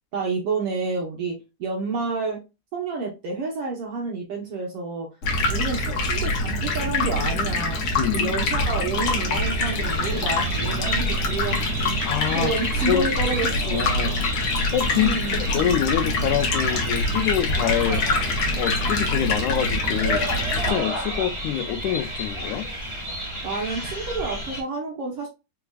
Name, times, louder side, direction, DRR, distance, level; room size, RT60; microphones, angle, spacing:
voice 1, 0.1-2.4 2.7-5.1 5.5-7.8 8.1-12.1 12.3-14.0 14.9-15.4 23.4-25.3, right 4 dB, 65° right, 1.6 m, -29 dB
Stream, 5.2-20.7, left 2 dB, 60° left, 1.6 m, -25 dB
voice 2, 8.0-8.3 12.1-12.5 12.9-13.1 13.6-14.2 14.7-15.1 15.5-18.1 18.6-22.7, left 11 dB, 85° left, 2.0 m, -26 dB
sound 1, 8.9-24.6, equal, 20° right, 0.9 m, -31 dB
4.8 x 3.4 x 2.3 m
omnidirectional pair, 3.5 m